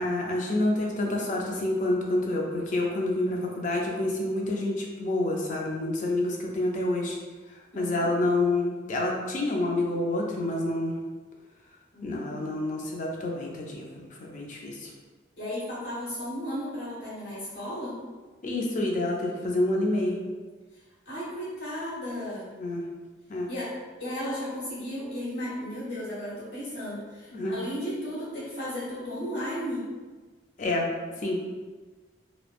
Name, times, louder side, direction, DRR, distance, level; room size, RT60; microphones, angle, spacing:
voice 1, 0.0-7.2 7.5-11.0 12.0-14.9 18.4-20.2 22.5-22.9 23.3-23.5 27.3-27.6 30.6-31.4, left 2 dB, 40° left, -1 dB, 0.4 m, -28 dB
voice 2, 7.7-8.1 11.9-12.6 15.4-18.0 21.0-22.5 23.5-23.7 24.0-29.9, equal, 65° left, -9 dB, 1.3 m, -35 dB
3.0 x 2.0 x 2.4 m, 1.3 s
head